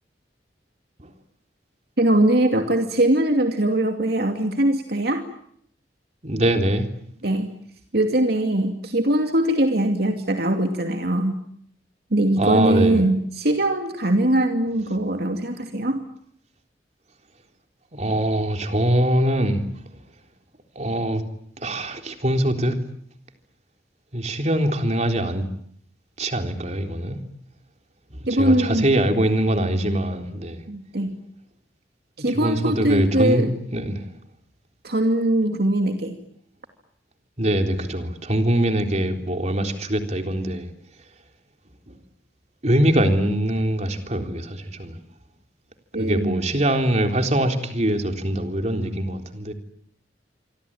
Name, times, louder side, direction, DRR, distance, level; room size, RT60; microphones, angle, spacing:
voice 1, 2.0-5.3 7.2-7.5 7.9-11.4 12.1-16.0 28.3-28.9 30.7-31.1 32.2-33.5 34.8-36.2 45.9-46.4, right 1 dB, 60° right, 5 dB, 2.6 m, -21 dB
voice 2, 6.2-6.9 12.4-13.0 17.9-19.6 20.8-21.2 21.6-22.7 24.1-25.4 26.2-27.2 28.1-30.6 32.3-34.1 37.4-40.7 42.6-45.0 46.0-49.5, right 1 dB, 40° right, 5 dB, 3.8 m, -23 dB
27.5 x 24.5 x 8.9 m, 0.67 s
head